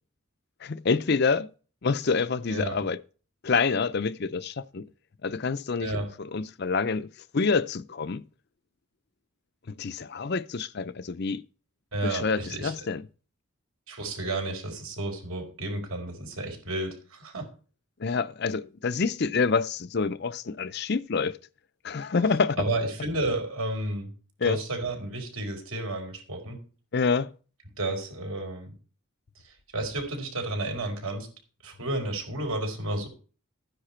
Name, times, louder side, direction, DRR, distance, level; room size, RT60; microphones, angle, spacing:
voice 1, 0.6-1.5 1.8-3.0 3.4-4.9 5.2-8.3 9.7-11.4 12.0-13.1 18.0-21.4 21.8-22.6 24.4-24.6 26.9-27.3, left 4 dB, 50° left, 0.5 m, -27 dB
voice 2, 2.5-2.8 5.8-6.1 11.9-12.7 13.9-17.5 22.6-24.1 24.4-26.6 27.8-28.7 29.4-31.3 31.6-33.1, right 2 dB, 80° right, 4.8 m, -32 dB
13.5 x 10.0 x 4.4 m
head